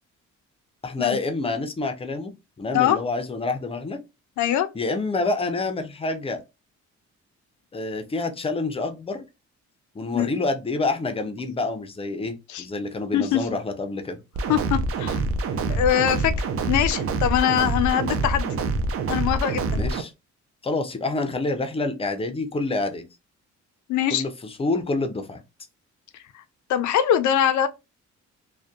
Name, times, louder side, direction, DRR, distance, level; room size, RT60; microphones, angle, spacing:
voice 1, 0.8-4.0 4.7-6.4 7.7-9.2 9.9-14.2 19.7-20.1 20.6-23.0 24.1-25.4, left 3 dB, 20° left, 0.4 m, -27 dB
voice 2, 4.4-4.7 10.1-10.3 12.5-12.6 13.1-13.5 14.5-15.2 15.7-16.3 16.7-18.5 19.1-19.8 23.9-24.2 26.7-27.7, left 10 dB, 75° left, 0.5 m, -22 dB
sound 1, 14.3-20.0, right 3 dB, 50° right, 0.4 m, -26 dB
2.6 x 2.1 x 2.3 m
cardioid pair, 90°, 30 cm